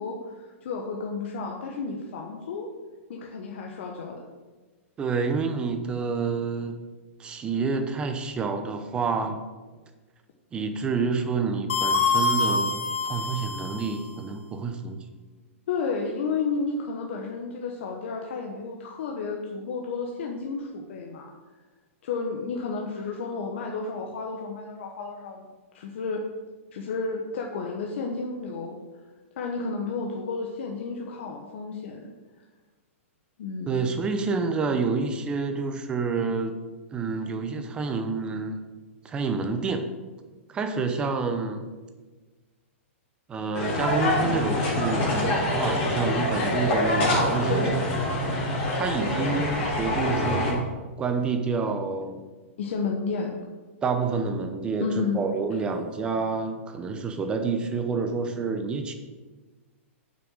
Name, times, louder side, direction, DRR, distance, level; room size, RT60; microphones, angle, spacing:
voice 1, 0.0-2.7 3.1-4.2 15.7-21.3 22.0-25.5 25.7-26.2 26.7-28.8 29.4-32.1 33.4-34.0 47.5-47.8 52.6-53.4 54.8-55.3, left 4 dB, 60° left, 1 dB, 1.1 m, -32 dB
voice 2, 5.0-6.8 7.2-9.4 10.5-15.0 33.7-36.6 36.9-38.6 39.0-39.9 40.5-41.7 43.3-47.9 48.8-50.7 51.0-52.2 53.8-58.9, right 4 dB, 15° right, 6 dB, 0.7 m, -28 dB
sound 1, 11.7-14.1, left 3 dB, 75° left, 1.3 m, -25 dB
sound 2, 43.5-50.5, left 1 dB, 35° left, 3.1 m, -25 dB
7.4 x 6.1 x 6.5 m, 1.3 s
hypercardioid pair, 160°, 7 cm